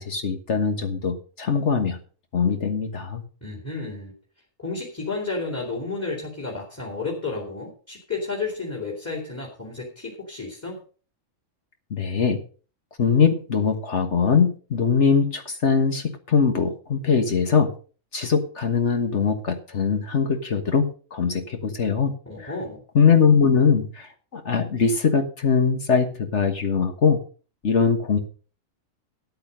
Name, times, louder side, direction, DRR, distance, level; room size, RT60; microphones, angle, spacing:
voice 1, 0.0-2.0 2.3-3.2 11.9-12.4 13.0-17.7 18.1-22.1 22.4-22.5 22.9-27.2 27.6-28.2, left 6 dB, 65° left, 6 dB, 1.7 m, -21 dB
voice 2, 3.4-4.1 4.6-10.8 22.3-22.8, left 3 dB, 10° left, -1 dB, 2.9 m, -32 dB
13.5 x 8.4 x 5.2 m, 0.39 s
omnidirectional pair, 1.3 m